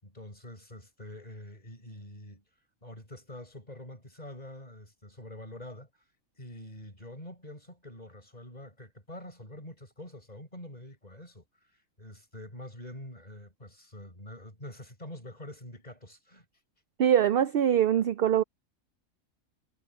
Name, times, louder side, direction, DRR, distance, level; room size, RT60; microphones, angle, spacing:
voice 1, 0.0-2.4 2.8-5.9 6.3-11.4 12.0-16.4, left 1 dB, 30° left, 6.3 m, -46 dB
voice 2, 17.0-18.4, right 9 dB, 65° right, 0.6 m, -23 dB
omnidirectional pair, 1.4 m